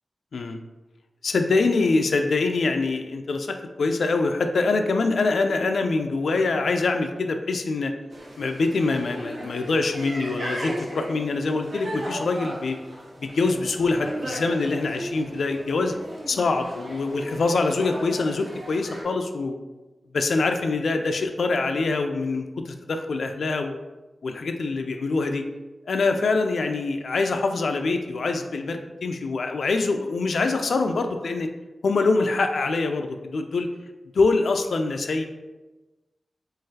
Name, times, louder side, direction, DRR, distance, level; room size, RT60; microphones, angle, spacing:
voice 1, 1.2-7.9 8.4-12.8 13.2-15.9 16.3-19.6 20.1-23.8 24.2-25.4 25.9-31.5 31.8-33.7 34.1-35.2, left 3 dB, 90° left, 6 dB, 0.3 m, -24 dB
sound 1, 8.1-19.0, right 1 dB, 80° right, 1.0 m, -36 dB
3.8 x 3.1 x 2.7 m, 1.1 s
wide cardioid pair, 120°, 0 cm